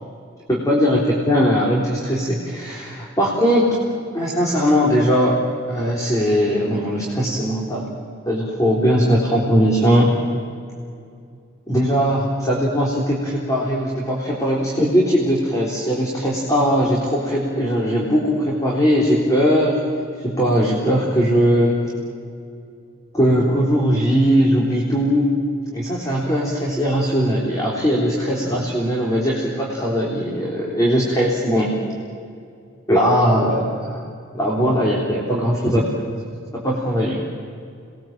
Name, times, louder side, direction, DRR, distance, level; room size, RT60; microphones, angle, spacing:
voice 1, 0.5-3.8 4.1-5.4 5.7-7.9 8.3-10.1 11.7-19.8 20.2-21.8 23.1-25.4 25.7-31.8 32.9-34.0 34.3-35.8 36.5-37.3, equal, 15° left, -4 dB, 3.8 m, -19 dB
29.0 x 21.0 x 7.6 m, 2.4 s
head